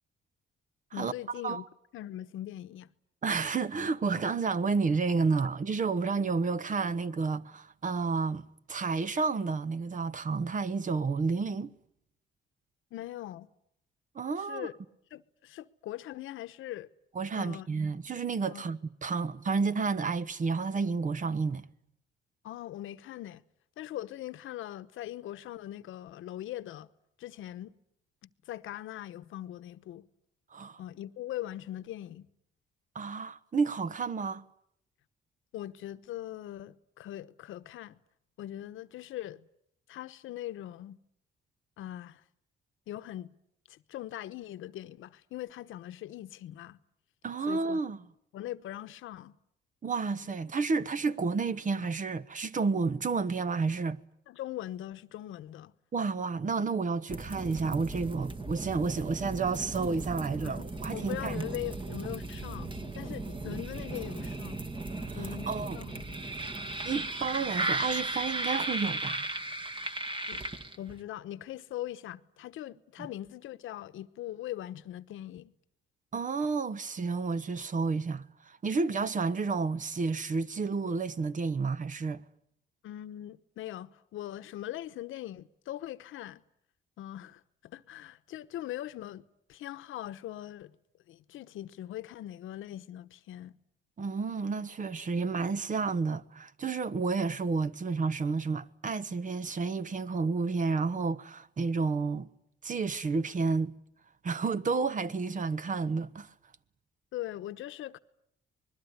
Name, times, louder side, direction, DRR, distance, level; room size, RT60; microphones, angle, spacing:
voice 1, 0.9-1.6 1.9-2.9 12.9-13.5 14.4-14.7 15.1-16.9 17.3-17.7 18.5-18.7 22.4-23.4 23.8-26.9 27.2-27.7 28.5-30.1 30.8-32.3 35.5-38.0 38.4-39.4 39.9-41.0 41.8-42.2 42.9-43.3 43.7-46.8 47.5-47.8 48.3-49.3 54.3-55.7 60.4-64.6 65.2-65.5 65.7-66.2 70.3-75.5 82.8-86.4 87.0-90.8 91.1-93.6 107.1-108.0, left 13 dB, 80° left, 1.1 m, -41 dB
voice 2, 3.2-11.7 14.1-14.7 17.1-21.7 30.5-30.8 32.9-34.4 47.2-48.0 49.8-54.0 55.9-61.5 65.1-65.8 66.8-69.3 76.1-82.2 94.0-102.3 102.6-103.7 104.2-106.3, right 4 dB, 40° right, 1.2 m, -31 dB
sound 1, 57.1-71.0, right 2 dB, 25° right, 2.0 m, -36 dB
26.0 x 21.0 x 9.7 m
cardioid pair, 90°, 20 cm